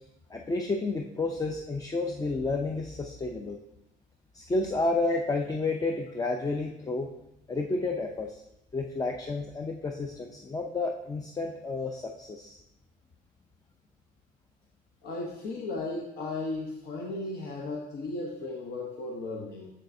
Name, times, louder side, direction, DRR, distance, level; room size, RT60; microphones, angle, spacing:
voice 1, 0.3-3.6 4.3-7.1 7.5-8.4 8.7-12.6, left 3 dB, 20° left, 3 dB, 0.5 m, -31 dB
voice 2, 15.0-19.7, left 2 dB, 70° left, -2 dB, 1.0 m, -35 dB
7.4 x 6.5 x 2.6 m, 0.83 s
cardioid pair, 110°, 17 cm